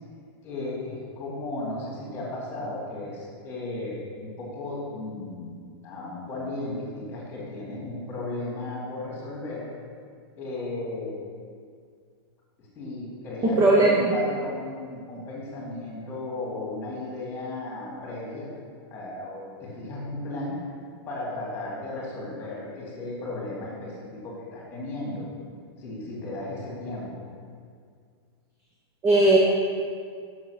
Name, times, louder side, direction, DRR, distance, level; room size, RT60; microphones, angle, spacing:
voice 1, 0.4-9.7 10.4-11.2 12.6-18.5 18.9-20.6 21.1-25.3 25.8-27.2, left 2 dB, 15° left, -4 dB, 2.5 m, -35 dB
voice 2, 13.4-14.1 29.0-29.4, right 2 dB, 20° right, -2 dB, 0.7 m, -18 dB
7.1 x 6.4 x 6.4 m, 2.1 s
supercardioid pair, 170°, 14 cm